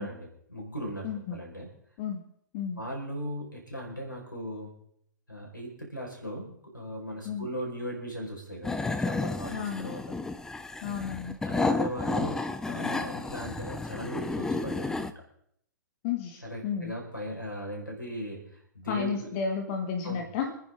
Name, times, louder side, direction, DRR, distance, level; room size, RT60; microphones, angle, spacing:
voice 1, 0.0-1.7 2.8-4.7 5.3-10.1 11.4-15.1 16.4-19.3 20.0-20.2, equal, 85° left, 0 dB, 4.8 m, -38 dB
voice 2, 1.0-1.4 2.0-2.2 2.5-2.8 7.3-7.5 9.5-9.9 10.8-11.4 16.0-16.9 18.9-20.5, left 6 dB, 40° left, 3 dB, 1.9 m, -32 dB
sound 1, 8.6-15.1, left 3 dB, 5° left, 0.7 m, -31 dB
27.0 x 9.9 x 3.7 m, 0.69 s
figure-of-eight pair, 110°, 10 cm